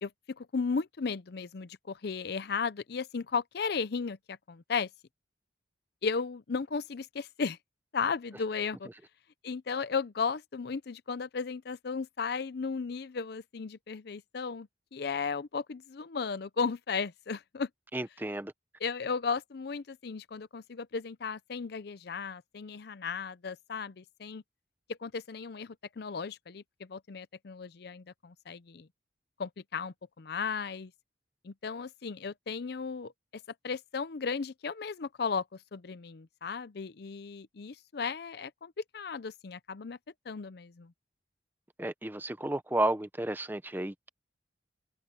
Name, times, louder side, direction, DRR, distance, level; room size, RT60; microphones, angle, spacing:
voice 1, 0.0-4.9 6.0-7.6 7.9-8.9 9.4-17.7 18.8-24.4 24.9-28.9 29.4-30.9 31.4-33.1 33.6-40.0 40.3-40.9, left 5 dB, 60° left, 0.5 m, -35 dB
voice 2, 17.9-18.5 41.8-44.1, right 1 dB, 10° right, 0.7 m, -32 dB
head